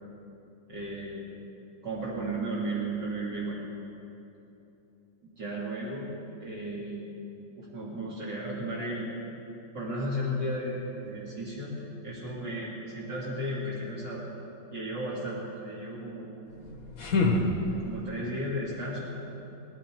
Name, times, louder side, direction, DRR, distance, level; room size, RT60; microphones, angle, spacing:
voice 1, 0.7-1.3 1.8-3.6 5.4-7.1 7.6-9.1 9.7-11.8 12.0-14.2 14.7-16.3 17.8-19.2, right 1 dB, 55° right, -9 dB, 3.1 m, -34 dB
sound 1, 16.5-18.2, left 2 dB, 45° left, 1.5 m, -28 dB
19.5 x 15.0 x 4.5 m, 3.0 s
omnidirectional pair, 2.3 m